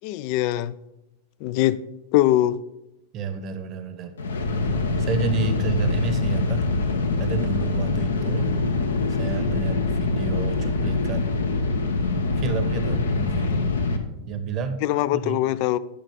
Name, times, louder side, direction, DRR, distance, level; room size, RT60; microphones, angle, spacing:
voice 1, 0.0-0.8 1.4-1.8 2.1-2.6 14.8-15.8, left 14 dB, 45° left, 0.4 m, -22 dB
voice 2, 3.1-4.2 5.0-6.7 7.2-8.5 9.2-11.3 12.4-13.6 14.3-14.8 15.1-15.4, right 5 dB, 35° right, 0.9 m, -30 dB
sound 1, 4.2-14.0, left 3 dB, 70° left, 0.9 m, -24 dB
10.0 x 5.7 x 5.2 m
figure-of-eight pair, 90°, 0 cm